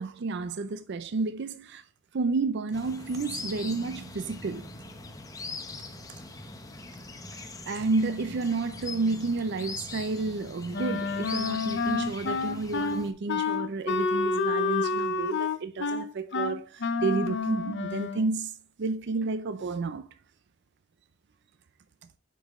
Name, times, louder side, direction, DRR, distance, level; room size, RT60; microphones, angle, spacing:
voice 1, 0.0-1.8 2.1-4.7 7.7-18.5 18.8-20.1, right 3 dB, 55° right, 0.5 m, -31 dB
sound 1, 2.7-13.1, left 3 dB, 15° left, 0.8 m, -41 dB
Wind instrument woodwind instrument, 10.7-18.3, left 4 dB, 55° left, 0.6 m, -29 dB
6.7 x 5.4 x 3.6 m
head